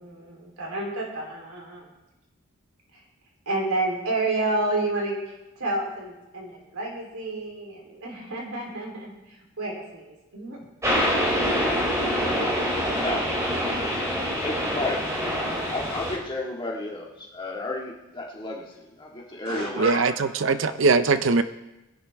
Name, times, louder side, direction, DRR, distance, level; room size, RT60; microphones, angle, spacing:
voice 1, 0.0-1.9 2.9-3.0 3.5-10.6 19.4-20.0, right 2 dB, 90° right, 3.3 m, -30 dB
sound 1, 10.8-16.2, equal, 15° right, 3.0 m, -25 dB
voice 2, 13.0-14.0 14.4-15.1 15.7-20.0, left 2 dB, 20° left, 1.8 m, -33 dB
voice 3, 19.8-21.4, right 4 dB, 60° right, 0.5 m, -21 dB
20.0 x 10.5 x 3.5 m
head